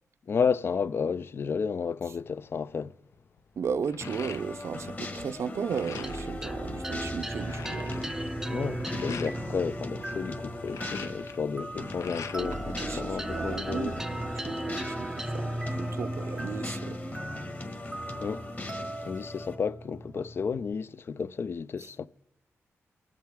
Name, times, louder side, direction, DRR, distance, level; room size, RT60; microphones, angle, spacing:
voice 1, 0.3-2.9 8.5-13.9 18.2-18.8 19.0-22.1, left 6 dB, 50° left, 0.4 m, -32 dB
sound 1, 2.4-2.7 3.1-4.9 5.2-6.4 6.8-6.9 7.1-9.4 10.4-12.6 13.0-13.9, left 6 dB, 85° left, 0.8 m, -44 dB
voice 2, 3.6-8.2 12.4-17.0, right 6 dB, 65° right, 0.5 m, -35 dB
sound 2, 4.0-19.5, left 2 dB, 35° left, 1.7 m, -40 dB
sound 3, 6.0-20.7, right 1 dB, 10° right, 0.4 m, -37 dB
20.5 x 7.5 x 3.6 m
cardioid pair, 90°, 5 cm